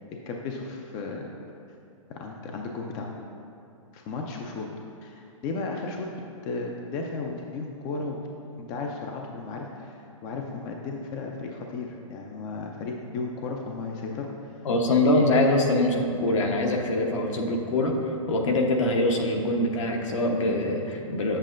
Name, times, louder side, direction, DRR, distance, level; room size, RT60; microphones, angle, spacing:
voice 1, 0.3-1.3 2.1-3.1 3.9-4.7 5.0-6.1 6.4-8.2 8.6-14.5, left 3 dB, 20° left, 1 dB, 0.4 m, -34 dB
voice 2, 14.6-18.0 18.3-21.4, left 1 dB, 65° left, 1 dB, 1.0 m, -23 dB
8.2 x 7.5 x 2.5 m, 2.5 s
hypercardioid pair, 150°, 17 cm